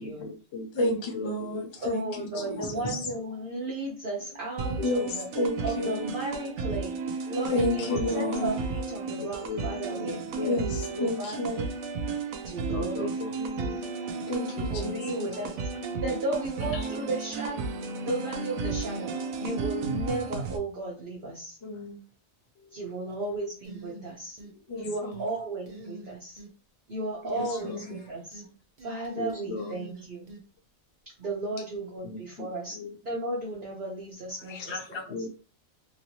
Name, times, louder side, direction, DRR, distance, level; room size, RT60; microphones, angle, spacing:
voice 1, 0.0-1.7 2.3-2.5 7.9-8.4 9.2-10.6 12.7-13.9 14.2-14.3 22.6-22.7 24.4-24.5 27.4-27.8 29.2-29.7 32.0-33.0 35.1-35.4, left 4 dB, 65° left, 0.8 m, -38 dB
voice 2, 0.7-3.1 4.8-6.1 7.5-8.5 10.5-11.7 14.3-15.3 16.7-16.9 21.6-22.0 24.7-25.2 27.2-28.0 34.5-35.0, left 2 dB, 30° left, 0.5 m, -31 dB
voice 3, 1.8-5.2 5.6-6.9 7.3-7.9 8.1-10.6 10.9-11.5 12.4-13.2 13.6-13.9 14.7-15.5 15.8-19.1 19.4-21.6 22.7-24.4 24.8-26.4 26.9-28.4 28.8-30.3 31.2-32.8 33.0-35.1, right 2 dB, 45° right, 0.9 m, -35 dB
sound 1, 4.6-20.6, right 4 dB, 85° right, 1.0 m, -33 dB
sound 2, 23.6-24.5 24.8-25.3 25.7-26.5 27.6-28.5 28.8-30.4, right 2 dB, 70° right, 0.3 m, -45 dB
3.0 x 2.6 x 2.9 m
omnidirectional pair, 1.4 m